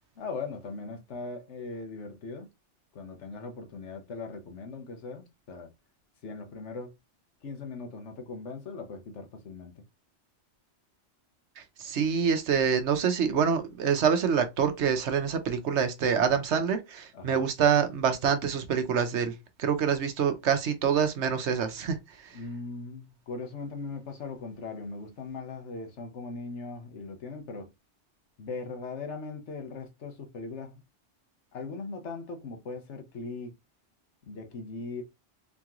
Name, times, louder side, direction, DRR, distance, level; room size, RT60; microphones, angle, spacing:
voice 1, 0.1-2.5 2.9-5.7 6.2-7.0 7.4-9.8 17.1-17.5 22.3-27.7 28.4-30.8 31.5-33.5 34.2-35.0, left 4 dB, 75° left, 1.3 m, -39 dB
voice 2, 11.6-22.3, right 7 dB, 75° right, 1.1 m, -26 dB
3.9 x 3.0 x 3.6 m
omnidirectional pair, 1.2 m